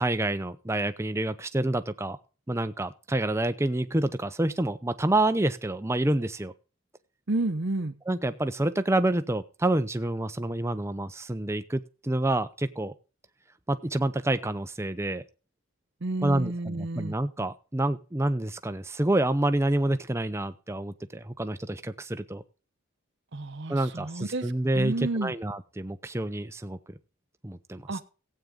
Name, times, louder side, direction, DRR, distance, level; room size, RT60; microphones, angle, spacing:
voice 1, 0.0-2.2 2.5-6.5 8.1-12.9 13.7-15.2 16.2-22.4 23.7-26.8 27.4-28.0, right 1 dB, 10° right, 11 dB, 0.6 m, -28 dB
voice 2, 7.3-7.9 16.0-17.1 23.3-25.3 27.9-28.0, right 2 dB, 55° right, 8 dB, 0.9 m, -31 dB
16.0 x 8.6 x 3.6 m, 0.34 s
head